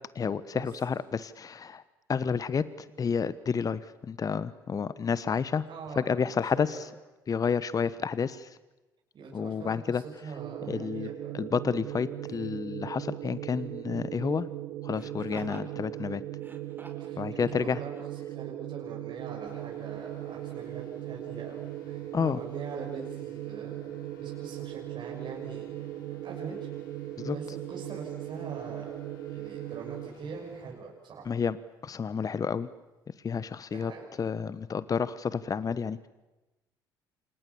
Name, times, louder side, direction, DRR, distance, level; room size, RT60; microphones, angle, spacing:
voice 1, 0.1-1.8 2.1-5.6 6.0-6.9 7.3-8.6 9.3-10.0 10.7-11.1 11.3-14.5 14.8-16.2 17.2-17.8 22.1-22.4 27.2-27.4 31.2-31.6 31.8-32.7 33.2-33.9 34.2-36.1, left 6 dB, 35° left, 16 dB, 1.1 m, -30 dB
voice 2, 5.7-6.9 9.1-11.3 17.0-17.9 18.3-26.6 27.3-29.0 29.3-31.3 33.7-34.0, right 4 dB, 45° right, -2 dB, 6.5 m, -43 dB
sound 1, 10.4-30.1, right 14 dB, 60° right, 1.8 m, -39 dB
Laughter, 10.7-10.9 12.2-12.6 14.9-15.7 16.3-17.1 17.9-18.0, right 2 dB, 20° right, 5.0 m, -49 dB
sound 2, 19.5-30.8, left 6 dB, 80° left, 3.3 m, -58 dB
29.5 x 27.5 x 7.1 m, 1.1 s
figure-of-eight pair, 55°, 11 cm